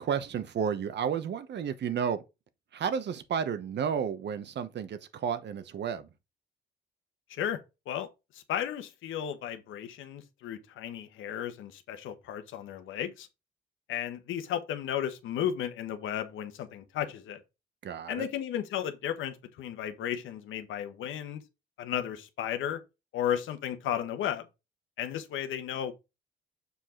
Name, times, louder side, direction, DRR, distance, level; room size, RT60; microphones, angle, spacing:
voice 1, 0.0-2.2 2.7-6.1 17.8-18.3, right 7 dB, 60° right, 1.0 m, -32 dB
voice 2, 7.3-7.6 7.9-8.1 8.3-13.3 13.9-17.4 18.1-21.4 21.8-22.8 23.1-24.5 25.0-25.9, left 10 dB, 85° left, 1.2 m, -34 dB
6.8 x 4.8 x 3.7 m
cardioid pair, 90°, 20 cm